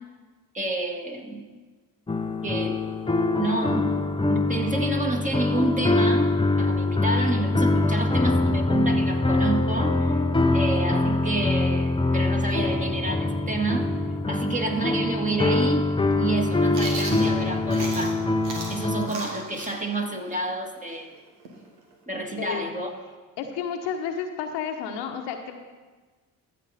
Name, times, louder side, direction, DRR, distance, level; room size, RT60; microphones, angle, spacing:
voice 1, 0.5-1.4 2.4-2.8 3.3-3.9 4.2-6.3 6.6-10.2 10.5-13.9 14.3-15.9 16.2-18.2 18.7-21.1 22.1-22.9, right 2 dB, 15° right, 2 dB, 2.0 m, -29 dB
sound 1, 2.1-19.1, left 2 dB, 10° left, 0.7 m, -24 dB
Chewing mastication, 16.7-18.2 18.4-22.0, right 2 dB, 80° right, 1.7 m, -37 dB
voice 2, 22.4-22.7 23.4-25.5, left 7 dB, 70° left, 4 dB, 1.1 m, -31 dB
14.0 x 7.7 x 4.1 m, 1.3 s
hypercardioid pair, 45°, 44 cm